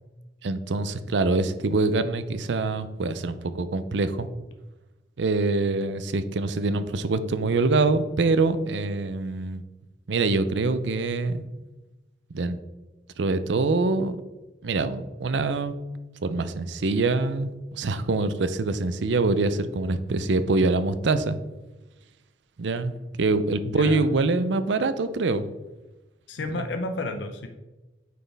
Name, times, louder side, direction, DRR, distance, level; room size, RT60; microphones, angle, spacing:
voice 1, 0.4-4.3 5.2-9.6 10.1-11.4 12.3-12.6 13.2-14.2 14.6-15.7 16.2-21.4 22.6-25.5 26.5-26.7, right 3 dB, 75° right, 12 dB, 0.5 m, -25 dB
voice 2, 23.6-24.0 26.3-27.5, left 2 dB, 80° left, 6 dB, 0.6 m, -31 dB
9.2 x 4.3 x 3.4 m, 1.1 s
head